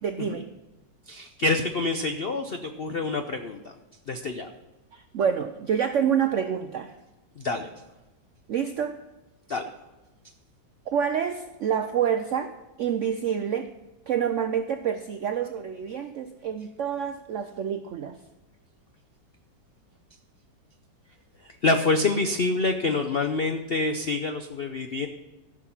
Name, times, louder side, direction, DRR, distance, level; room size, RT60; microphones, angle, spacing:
voice 1, 0.0-0.5 4.9-6.9 8.5-9.0 10.9-12.5 12.8-13.7 14.1-18.1, right 8 dB, 90° right, 8 dB, 0.6 m, -27 dB
voice 2, 1.1-3.6 4.1-4.5 7.4-7.7 9.5-9.7 21.6-25.1, left 3 dB, 80° left, 6 dB, 0.5 m, -26 dB
14.5 x 6.2 x 5.8 m, 1.1 s
omnidirectional pair, 2.0 m